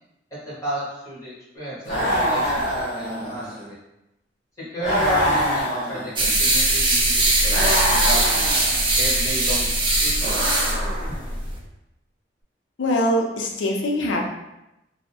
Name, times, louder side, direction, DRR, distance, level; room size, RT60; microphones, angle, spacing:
voice 1, 0.3-3.8 4.6-8.5 9.0-10.5, equal, 15° left, -9 dB, 1.1 m, -33 dB
sound 1, 1.8-3.6 4.8-6.4 7.5-8.8 10.2-11.3, equal, 40° left, 0.9 m, -25 dB
windup porn monkey, 6.2-11.6, right 2 dB, 25° right, 0.4 m, -21 dB
voice 2, 12.8-14.3, left 1 dB, 90° left, 1 dB, 0.5 m, -23 dB
2.5 x 2.0 x 2.7 m, 0.89 s
head